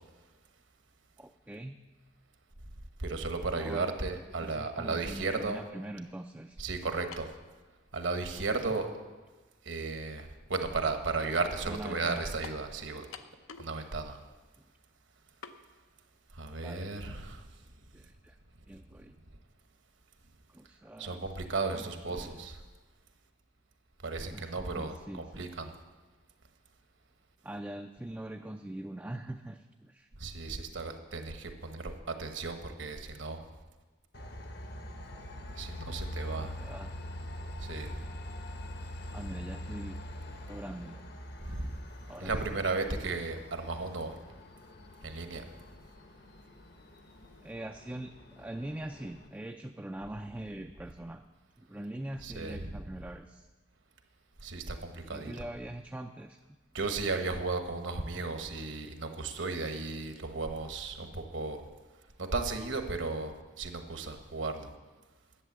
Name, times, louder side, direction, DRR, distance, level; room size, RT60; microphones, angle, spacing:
voice 1, 1.2-1.8 3.6-3.9 4.4-6.6 8.5-8.6 11.7-12.3 14.6-14.7 16.6-17.2 17.5-17.6 17.9-18.4 18.7-19.2 20.5-21.2 21.7-22.4 24.3-25.5 27.4-30.1 35.7-36.9 39.1-40.0 40.5-41.0 42.1-42.3 47.4-51.2 51.6-53.5 55.1-56.4 61.0-61.1, right 1 dB, 10° right, 4 dB, 0.3 m, -43 dB
voice 2, 3.0-5.6 6.6-7.3 7.9-8.9 9.6-13.1 13.6-14.2 16.4-17.4 21.0-22.6 24.0-25.7 30.2-33.4 35.6-36.5 37.6-37.9 41.4-41.7 42.2-44.1 45.0-45.4 52.2-52.7 54.4-55.3 56.7-61.6 62.2-64.7, right 3 dB, 65° right, 6 dB, 1.2 m, -35 dB
sound 1, 7.1-7.4 8.3-8.4 12.4-12.7 13.1-13.8 14.1-14.2 15.4-15.6, left 6 dB, 80° left, 0.7 m, -46 dB
Train, 34.1-49.3, left 1 dB, 50° left, 0.9 m, -44 dB
11.0 x 8.3 x 7.4 m, 1.2 s
head